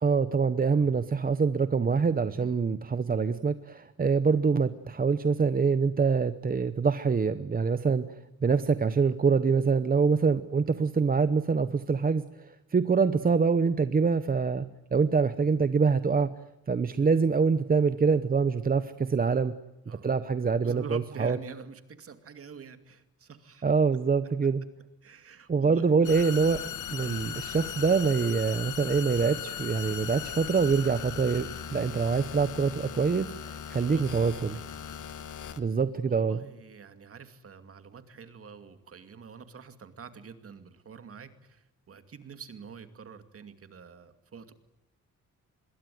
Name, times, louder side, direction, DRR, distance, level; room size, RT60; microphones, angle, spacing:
voice 1, 0.0-14.6 14.9-16.3 16.7-19.5 20.0-21.4 23.6-24.6 25.5-26.6 26.9-34.6 35.6-36.4, right 5 dB, 30° right, 12 dB, 0.9 m, -25 dB
voice 2, 20.6-23.6 25.0-26.0 26.6-26.8 33.7-34.7 35.8-44.5, right 6 dB, 50° right, 9 dB, 2.4 m, -47 dB
sound 1, 26.0-35.6, left 9 dB, 80° left, 1.7 m, -38 dB
26.0 x 22.0 x 9.4 m, 0.90 s
wide cardioid pair, 160°, 30 cm